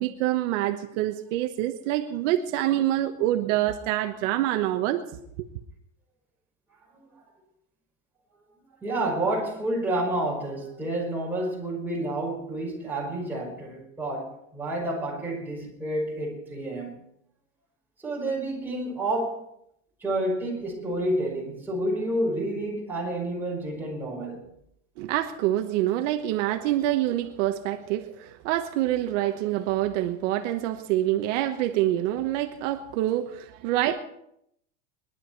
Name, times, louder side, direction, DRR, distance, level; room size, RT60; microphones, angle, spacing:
voice 1, 0.0-5.0 25.0-34.0, right 13 dB, 70° right, 6 dB, 1.3 m, -26 dB
voice 2, 8.8-17.0 18.0-19.4 20.0-24.4, right 1 dB, 5° right, -3 dB, 5.4 m, -29 dB
21.5 x 12.0 x 4.6 m, 0.76 s
supercardioid pair, 150°, 39 cm